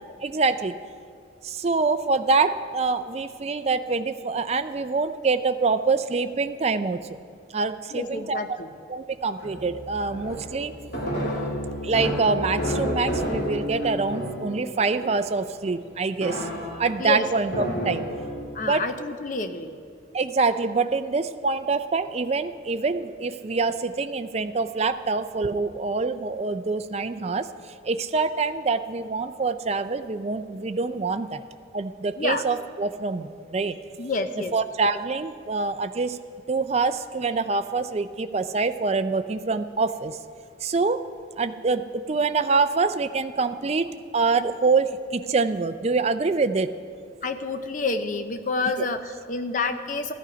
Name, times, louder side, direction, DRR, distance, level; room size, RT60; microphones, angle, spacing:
voice 1, 0.2-0.7 1.4-7.1 7.5-8.4 8.9-10.7 11.8-16.5 16.8-18.1 18.6-18.8 20.1-27.5 27.8-31.4 31.7-33.8 34.5-36.2 36.5-40.2 40.6-41.0 41.4-46.7, right 4 dB, 30° right, 10 dB, 0.4 m, -25 dB
voice 2, 7.9-8.7 17.0-17.3 18.5-19.8 32.2-32.5 34.0-34.5 47.2-50.1, left 3 dB, 40° left, 8 dB, 0.7 m, -28 dB
sound 1, 9.4-15.5 16.2-18.4, equal, 65° left, 3.2 m, -31 dB
15.0 x 10.5 x 5.1 m, 2.3 s
head